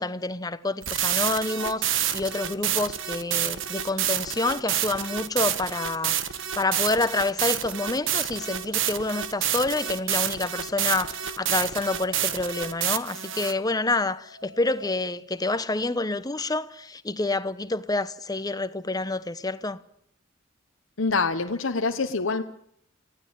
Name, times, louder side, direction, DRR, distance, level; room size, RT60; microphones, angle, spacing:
voice 1, 0.0-6.1 6.5-19.8, left 2 dB, 20° left, 1.0 m, -28 dB
sound 1, 0.8-13.5, right 10 dB, 65° right, 1.4 m, -28 dB
sound 2, 7.9-14.9, left 3 dB, 90° right, 5.6 m, -50 dB
voice 2, 21.0-22.4, left 4 dB, 70° left, 1.1 m, -25 dB
19.5 x 15.5 x 8.7 m
head